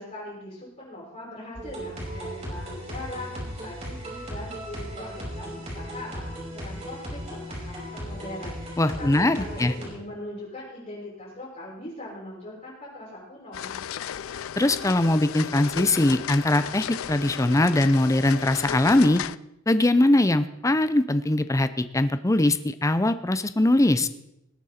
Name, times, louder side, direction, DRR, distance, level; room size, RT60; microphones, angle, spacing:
voice 1, 0.0-6.2 6.5-8.6 9.0-13.8, left 1 dB, 40° left, -10 dB, 5.8 m, -40 dB
sound 1, 1.5-9.9, equal, 35° right, 5.3 m, -36 dB
voice 2, 8.8-9.7 14.6-19.2 19.7-24.1, left 1 dB, 15° left, 12 dB, 0.5 m, -21 dB
sound 2, 13.5-19.4, left 9 dB, 80° left, 0.4 m, -34 dB
19.5 x 8.8 x 4.3 m, 0.84 s
head